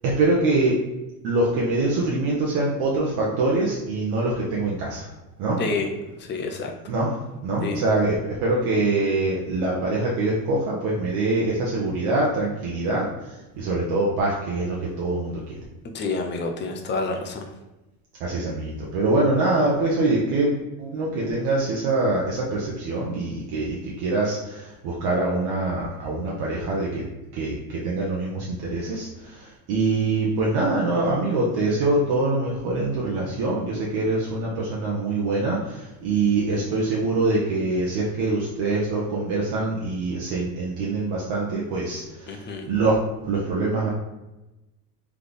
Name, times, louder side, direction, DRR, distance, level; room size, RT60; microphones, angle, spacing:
voice 1, 0.0-0.8 1.2-5.1 5.4-5.6 6.9-8.1 8.4-15.6 18.2-20.5 20.8-27.1 27.3-43.0 43.2-43.9, right 2 dB, 50° right, -4 dB, 1.0 m, -24 dB
voice 2, 5.6-6.7 7.6-7.8 15.9-17.5 42.3-42.7, left 3 dB, 25° left, 4 dB, 0.5 m, -28 dB
3.5 x 3.2 x 4.0 m, 1.0 s
supercardioid pair, 120°, 46 cm